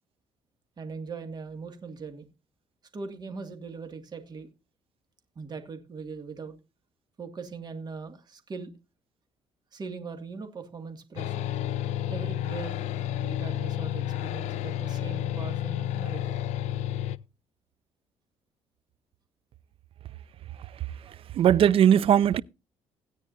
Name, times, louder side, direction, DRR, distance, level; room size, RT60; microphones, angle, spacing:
voice 1, 0.8-2.3 2.9-4.5 5.4-6.6 7.2-8.7 9.7-11.5 12.1-12.9 13.2-16.4 20.9-21.2, right 4 dB, 35° right, 2.1 m, -40 dB
sound 1, 11.2-17.2, left 12 dB, 80° left, 0.5 m, -31 dB
voice 2, 21.3-22.4, right 9 dB, 55° right, 0.4 m, -19 dB
16.5 x 9.4 x 2.6 m
cardioid pair, 100°, 12 cm